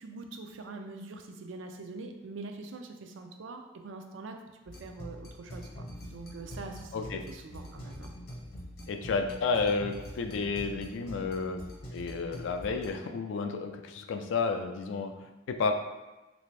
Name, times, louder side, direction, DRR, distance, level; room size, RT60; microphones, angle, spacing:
voice 1, 0.0-8.1, right 3 dB, 70° right, 5 dB, 0.4 m, -44 dB
sound 1, 4.7-12.9, equal, 50° left, 0.8 m, -44 dB
voice 2, 8.9-11.6 11.9-15.7, left 4 dB, 70° left, 6 dB, 0.3 m, -31 dB
3.2 x 2.6 x 3.2 m, 1.1 s
head